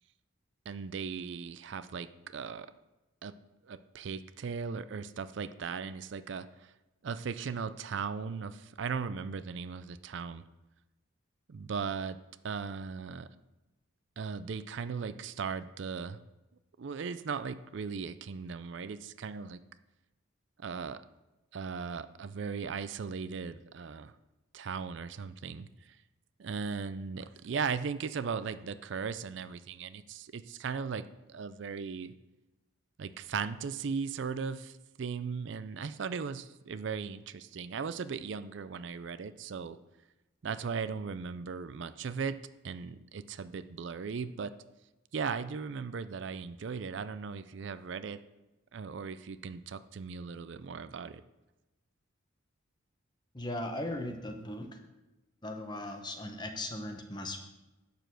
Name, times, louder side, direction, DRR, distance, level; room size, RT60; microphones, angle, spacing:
voice 1, 0.7-2.7 3.2-3.3 3.6-6.7 7.0-10.4 11.5-12.2 12.4-13.3 14.2-16.2 16.8-19.6 20.6-21.0 21.5-24.1 24.5-26.0 26.4-31.0 31.3-32.1 33.0-39.8 40.4-42.4 42.6-44.5 45.1-48.2 48.7-51.2, right 5 dB, 60° right, 13 dB, 0.4 m, -37 dB
voice 2, 53.3-54.7 55.4-57.4, left 1 dB, 20° left, 5 dB, 1.0 m, -38 dB
9.0 x 6.9 x 6.0 m, 1.0 s
head